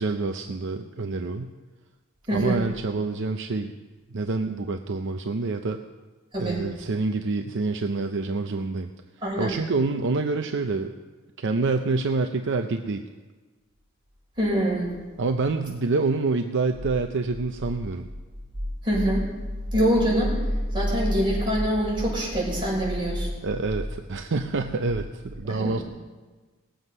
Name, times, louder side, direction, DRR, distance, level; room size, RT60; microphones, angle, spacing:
voice 1, 0.0-1.5 2.3-3.7 4.1-5.8 6.4-8.9 9.4-10.9 11.4-13.0 15.2-18.1 23.4-25.8, right 3 dB, 60° right, 6 dB, 0.6 m, -27 dB
voice 2, 2.3-2.6 6.3-6.6 9.2-9.6 14.4-14.9 18.8-19.2 19.7-20.4 20.7-23.3 25.4-25.8, equal, 25° right, -5 dB, 5.7 m, -24 dB
20.0 x 8.0 x 5.4 m, 1.3 s
head